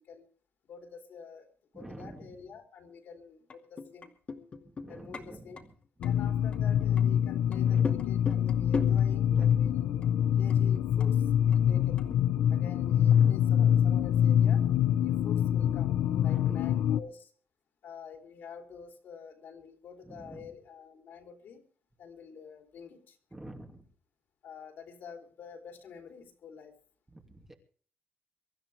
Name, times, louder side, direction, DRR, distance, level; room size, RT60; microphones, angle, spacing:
voice 1, 0.6-1.5 1.7-4.1 4.9-5.7 6.0-9.9 10.3-12.0 12.5-14.7 15.0-17.3 17.8-21.7 22.0-23.2 24.4-26.8, left 6 dB, 60° left, 3 dB, 3.5 m, -48 dB
voice 2, 1.7-2.3 4.8-5.7 7.6-8.0 9.3-9.6 13.0-13.6 16.3-16.9 20.1-20.5 23.3-23.8 27.1-27.5, right 1 dB, 10° right, 2 dB, 2.7 m, -46 dB
sound 1, 3.5-5.2 5.6-5.7 6.0-6.2 6.5-7.0 7.5-9.0 9.5-9.6 10.0-10.1 10.5-12.2, left 4 dB, 35° left, 2.4 m, -37 dB
sound 2, 6.0-17.0, left 9 dB, 80° left, 0.9 m, -25 dB
24.0 x 13.5 x 3.5 m, 0.43 s
cardioid pair, 170°, 4 cm